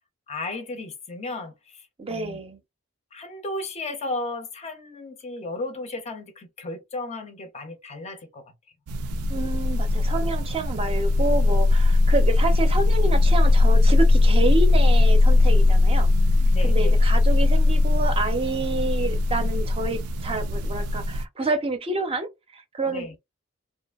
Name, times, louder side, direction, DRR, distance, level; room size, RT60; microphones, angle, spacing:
voice 1, 0.3-2.4 3.1-8.4 16.5-17.0 22.9-23.1, left 2 dB, 30° left, 0.5 m, -34 dB
voice 2, 2.0-2.6 9.3-16.1 16.6-23.1, right 3 dB, 25° right, 0.5 m, -28 dB
sound 1, 8.9-21.2, left 2 dB, 90° right, 0.4 m, -19 dB
2.6 x 2.4 x 2.3 m
head